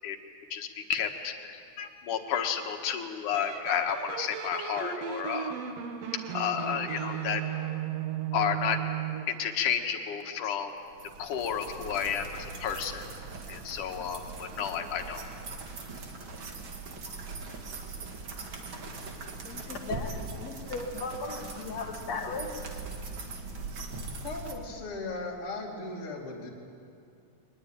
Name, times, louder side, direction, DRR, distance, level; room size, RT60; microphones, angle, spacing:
voice 1, 0.5-5.5 6.3-7.4 8.3-8.8 9.3-10.7 11.2-12.2 12.6-13.0 13.5-15.3, left 8 dB, 90° left, 5 dB, 2.9 m, -31 dB
sound 1, 3.3-9.4, right 10 dB, 60° right, 2.2 m, -35 dB
sound 2, 10.9-24.5, right 3 dB, 45° right, 2.5 m, -41 dB
voice 2, 19.4-22.5, left 4 dB, 60° left, 4 dB, 2.8 m, -37 dB
voice 3, 24.2-26.5, left 2 dB, 45° left, -3 dB, 3.5 m, -37 dB
23.0 x 20.5 x 9.1 m, 2.5 s
omnidirectional pair, 3.5 m